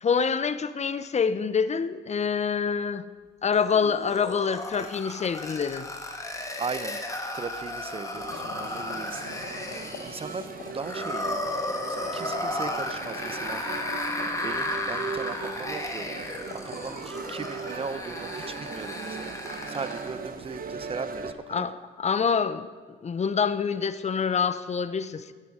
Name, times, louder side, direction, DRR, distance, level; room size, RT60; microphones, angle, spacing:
voice 1, 0.0-3.1 3.4-5.9 21.5-22.7 23.0-25.3, left 6 dB, 35° left, 14 dB, 0.6 m, -26 dB
sound 1, 3.5-20.2, left 1 dB, 15° left, 1.5 m, -34 dB
voice 2, 4.8-5.2 6.6-7.0 7.3-9.1 10.0-10.5 10.7-11.5 11.9-13.6 14.4-16.2 16.6-19.4 19.7-21.7, right 4 dB, 30° right, 13 dB, 0.7 m, -38 dB
sound 2, 8.1-20.2, left 5 dB, 85° left, 1.3 m, -48 dB
sound 3, 8.1-21.3, right 5 dB, 45° right, 1.0 m, -38 dB
13.0 x 10.5 x 4.9 m, 1.5 s
cardioid pair, 90°, 20 cm